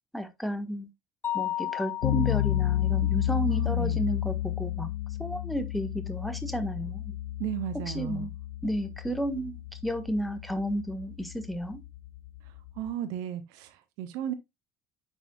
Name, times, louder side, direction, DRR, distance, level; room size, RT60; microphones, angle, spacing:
voice 1, 0.1-0.9 1.3-4.9 5.2-7.1 7.9-8.3 8.6-11.8, equal, ahead, 1.5 m, -32 dB
Mallet percussion, 1.2-3.0, left 12 dB, 30° left, 0.7 m, -34 dB
sound 1, 2.0-12.9, left 14 dB, 65° left, 0.4 m, -31 dB
voice 2, 3.5-4.0 7.4-8.3 12.8-14.3, right 11 dB, 60° right, 0.9 m, -34 dB
9.9 x 6.4 x 2.3 m
figure-of-eight pair, 60°, 7 cm